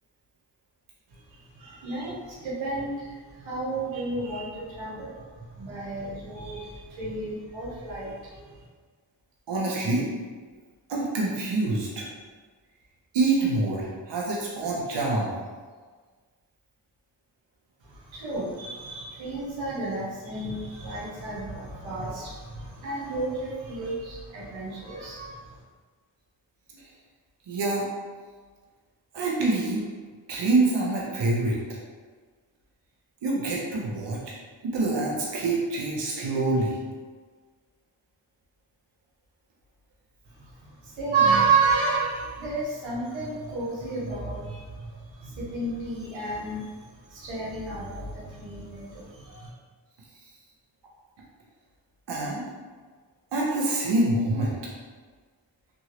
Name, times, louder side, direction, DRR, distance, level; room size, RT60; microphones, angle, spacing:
voice 1, 1.1-8.6 17.8-25.6 40.4-46.7 47.1-49.5, right 4 dB, 90° right, -7 dB, 0.9 m, -31 dB
voice 2, 9.5-10.1 10.9-12.1 13.1-15.3 27.5-27.9 29.1-29.8 30.3-31.6 33.2-34.2 34.6-36.8 52.1-52.4 53.3-54.5, right 2 dB, 65° right, -4 dB, 0.8 m, -26 dB
2.9 x 2.6 x 2.9 m, 1.5 s
cardioid pair, 40°, 46 cm